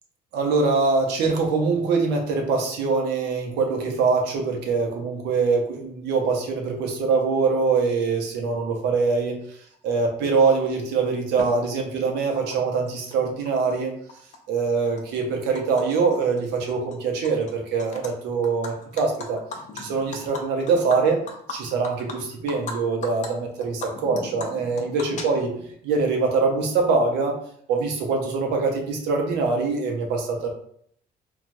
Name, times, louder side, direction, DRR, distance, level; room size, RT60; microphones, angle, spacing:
voice 1, 0.3-9.4 9.8-13.9 14.5-19.4 19.7-21.2 21.5-25.5 25.8-27.4 27.7-30.5, right 4 dB, 85° right, 2 dB, 0.7 m, -23 dB
Animal, 11.4-11.5 12.5-12.6 12.9-13.7 14.1-15.8 16.1-16.4 16.7-17.5 17.8-18.1 18.4-22.7 23.0-23.3 23.6-25.7, left 3 dB, 45° left, 0.6 m, -37 dB
3.2 x 2.3 x 2.6 m, 0.64 s
cardioid pair, 110°, 17 cm